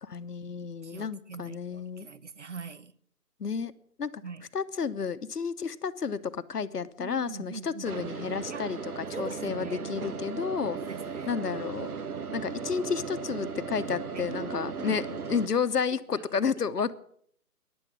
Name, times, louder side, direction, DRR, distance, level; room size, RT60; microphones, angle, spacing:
voice 1, 0.0-2.1 3.4-3.7 4.0-4.2 4.5-10.8 11.3-11.9 12.3-15.0 15.3-16.9, left 6 dB, 85° left, 1.1 m, -31 dB
voice 2, 0.8-2.9 4.2-4.5 7.0-8.1 8.5-8.7 9.1-9.9 10.8-11.4 14.1-14.3 14.8-15.0 15.9-16.4 16.8-16.9, right 5 dB, 50° right, 0.7 m, -43 dB
sound 1, 7.9-15.5, right 5 dB, 70° right, 1.2 m, -37 dB
15.0 x 10.5 x 6.1 m
figure-of-eight pair, 170°, 46 cm